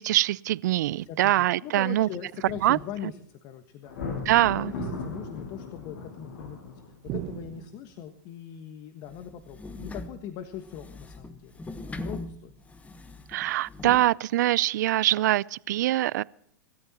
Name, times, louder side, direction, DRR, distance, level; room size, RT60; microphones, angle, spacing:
voice 1, 0.0-2.1 2.6-2.8 4.3-4.7 13.3-16.2, right 15 dB, 65° right, 0.5 m, -23 dB
sound 1, 0.8-1.2 2.4-3.2 4.7-5.7 7.1-8.0, right 12 dB, 40° right, 1.4 m, -40 dB
voice 2, 1.0-4.0 4.4-6.7 7.0-12.5, left 10 dB, 40° left, 1.5 m, -41 dB
Thunder, 3.8-7.2, left 5 dB, 65° left, 7.7 m, -37 dB
sound 2, 9.1-14.1, left 2 dB, 15° left, 1.3 m, -41 dB
26.0 x 13.5 x 3.0 m
hypercardioid pair, 115°, 11 cm